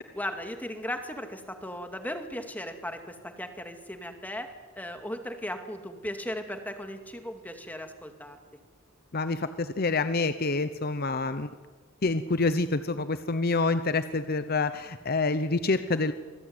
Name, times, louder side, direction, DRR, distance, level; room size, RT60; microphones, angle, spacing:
voice 1, 0.1-8.4, left 1 dB, 10° left, 6 dB, 2.2 m, -37 dB
voice 2, 9.1-11.5 12.0-16.1, left 3 dB, 45° left, 11 dB, 0.8 m, -27 dB
27.0 x 20.5 x 9.5 m, 1.4 s
head